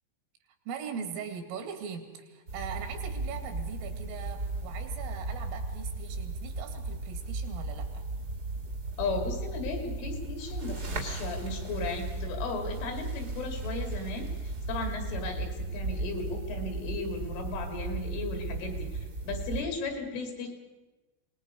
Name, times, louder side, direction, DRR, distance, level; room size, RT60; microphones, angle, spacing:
voice 1, 0.7-8.1, right 7 dB, 85° right, 6 dB, 4.7 m, -40 dB
sound 1, 2.5-19.6, right 2 dB, 55° right, 1.0 m, -36 dB
voice 2, 9.0-20.5, left 3 dB, 75° left, 4 dB, 5.3 m, -36 dB
25.0 x 20.0 x 5.3 m, 1.1 s
omnidirectional pair, 5.7 m